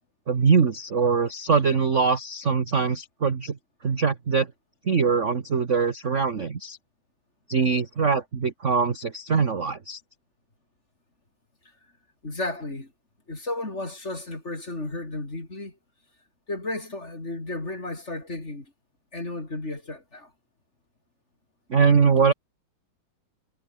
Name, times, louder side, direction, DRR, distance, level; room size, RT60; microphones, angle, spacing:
voice 1, 0.3-3.6 3.8-4.5 4.8-6.8 7.5-10.0 21.7-22.3, right 5 dB, 40° right, 1.0 m, -22 dB
voice 2, 12.2-12.9 13.3-15.8 16.5-18.7 19.1-20.3, left 2 dB, 20° left, 4.3 m, -33 dB
omnidirectional pair, 3.5 m